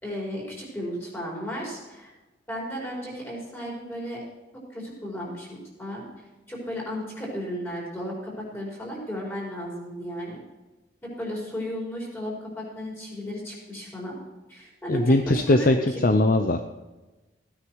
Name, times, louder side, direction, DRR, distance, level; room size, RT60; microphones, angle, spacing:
voice 1, 0.0-2.1 2.5-4.2 4.7-6.0 6.5-10.4 11.2-14.2 14.5-16.1, equal, 15° left, -4 dB, 4.8 m, -34 dB
voice 2, 14.9-16.6, left 2 dB, 50° left, 7 dB, 0.6 m, -20 dB
16.0 x 9.9 x 4.7 m, 1.1 s
head